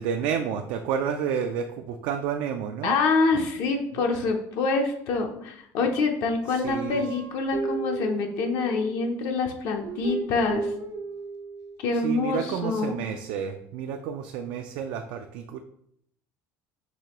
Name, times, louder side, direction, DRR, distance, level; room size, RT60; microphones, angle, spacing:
voice 1, 0.0-3.0 4.0-4.1 6.5-7.0 11.9-15.6, right 7 dB, 70° right, 5 dB, 0.4 m, -30 dB
voice 2, 2.8-10.7 11.8-13.0, left 4 dB, 65° left, 3 dB, 0.6 m, -26 dB
Guitar, 6.7-9.1 9.8-11.8, right 4 dB, 90° right, 0.9 m, -34 dB
6.1 x 2.9 x 2.9 m, 0.72 s
cardioid pair, 145°, 7 cm